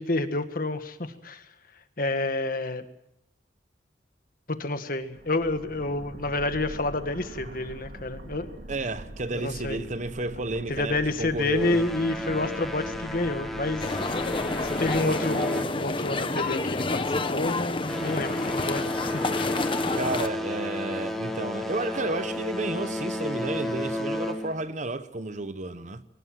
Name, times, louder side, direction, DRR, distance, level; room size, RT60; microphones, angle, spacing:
voice 1, 0.0-1.4 2.0-2.8 4.5-8.5 9.3-9.8 10.7-13.9 14.6-17.0 17.3-19.5, left 2 dB, 50° left, 1.7 m, -29 dB
sound 1, 5.0-15.2, right 1 dB, 65° right, 2.8 m, -43 dB
voice 2, 8.7-11.8 20.0-26.0, right 2 dB, 45° right, 1.0 m, -32 dB
sound 2, 11.5-16.4 16.7-17.1 17.6-24.7, left 1 dB, ahead, 2.4 m, -33 dB
sound 3, 13.8-20.3, left 2 dB, 30° left, 1.1 m, -29 dB
21.5 x 19.0 x 7.6 m
head